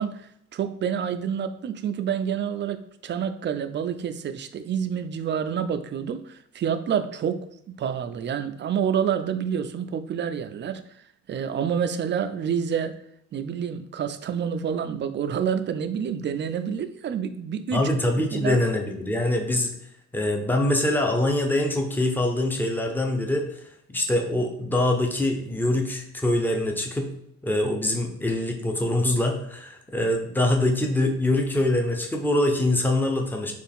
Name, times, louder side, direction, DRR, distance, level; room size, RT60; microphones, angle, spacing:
voice 1, 0.0-13.0 13.3-17.9 18.3-18.6, right 8 dB, 40° right, 10 dB, 0.4 m, -28 dB
voice 2, 17.7-19.8 20.1-23.5 23.9-27.1 27.4-33.5, left 1 dB, 5° left, 2 dB, 0.7 m, -24 dB
4.4 x 2.4 x 3.5 m, 0.73 s
cardioid pair, 90°, 30 cm